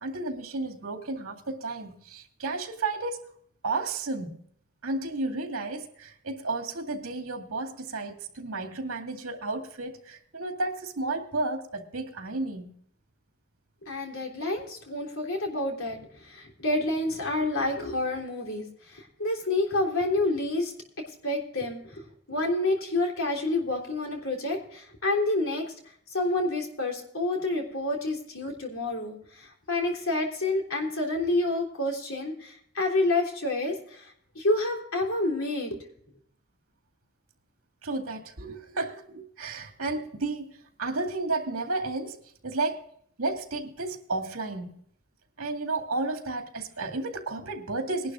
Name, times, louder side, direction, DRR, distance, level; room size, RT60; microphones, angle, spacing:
voice 1, 0.0-3.3 3.6-4.4 4.8-12.7 37.8-42.2 42.4-42.8 43.2-44.7 45.4-48.1, right 3 dB, 75° right, 4 dB, 2.2 m, -32 dB
voice 2, 13.8-20.7 21.2-25.7 26.1-35.8, left 2 dB, 65° left, 1 dB, 3.5 m, -29 dB
21.0 x 11.5 x 2.5 m, 0.65 s
head